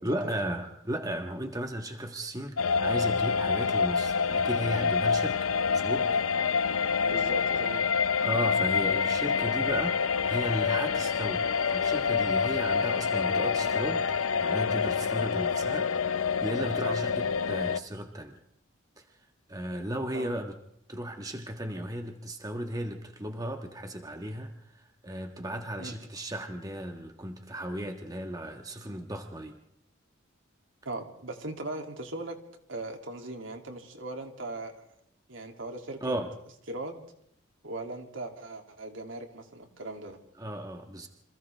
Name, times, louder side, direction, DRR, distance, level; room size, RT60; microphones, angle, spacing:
voice 1, 0.0-6.1 8.2-14.1 14.4-18.4 19.5-20.5 20.9-24.5 25.0-29.5 36.0-36.3 40.4-41.1, right 1 dB, 20° right, 4 dB, 1.6 m, -35 dB
sound 1, 2.6-17.8, left 6 dB, 90° left, 0.7 m, -27 dB
voice 2, 7.0-7.9 16.8-17.0 20.1-20.4 25.8-26.0 30.8-32.4 32.7-34.9 35.3-36.0 36.7-37.1 37.6-40.2, right 2 dB, 70° right, 3 dB, 2.9 m, -39 dB
28.5 x 26.5 x 3.5 m, 0.75 s
head